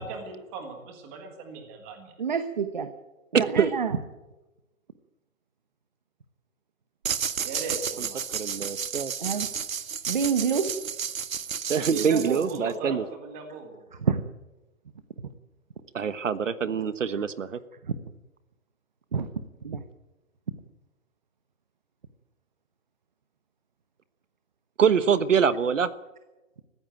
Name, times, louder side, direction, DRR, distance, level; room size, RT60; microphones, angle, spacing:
voice 1, 0.0-2.1 7.4-8.2 11.9-13.8, right 4 dB, 10° right, 4 dB, 1.7 m, -37 dB
voice 2, 2.2-2.9 3.3-4.0 9.2-9.5 10.1-10.7 14.0-14.2 19.1-19.3 19.6-19.8, right 6 dB, 35° right, 10 dB, 1.1 m, -26 dB
voice 3, 3.3-3.7 8.3-9.1 11.7-13.0 15.9-17.6 24.8-25.9, right 7 dB, 65° right, 14 dB, 1.3 m, -24 dB
sound 1, 7.0-12.7, right 7 dB, 90° right, 1.6 m, -32 dB
20.5 x 15.0 x 9.1 m, 1.1 s
hypercardioid pair, 180°, 40 cm